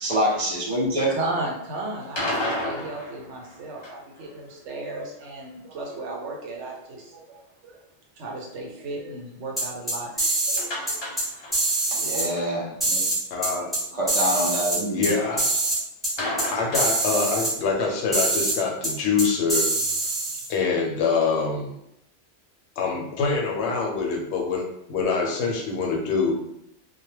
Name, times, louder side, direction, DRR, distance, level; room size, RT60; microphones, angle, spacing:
voice 1, 0.0-1.2 11.9-13.0 13.9-15.0, equal, 40° right, -3 dB, 0.6 m, -25 dB
voice 2, 1.1-7.8 8.2-11.6, right 2 dB, 80° right, 0 dB, 1.0 m, -35 dB
sound 1, 2.0-4.2 10.6-11.8 12.1-12.2 12.6-12.7 16.2-17.5, left 1 dB, 45° left, 0.3 m, -31 dB
sound 2, 9.6-10.6 10.9-11.2 11.5-12.2 12.8-13.8 14.1-15.1 15.4-15.8 16.0-16.1 16.4-16.5 16.7-17.5 18.1-18.5 18.8-18.9 19.2-20.5, right 2 dB, ahead, 0.7 m, -24 dB
voice 3, 13.3-13.8 14.9-15.6 16.5-19.7 20.5-21.7 22.8-26.4, left 4 dB, 75° left, 0 dB, 0.9 m, -25 dB
2.2 x 2.1 x 3.1 m, 0.80 s
omnidirectional pair, 1.2 m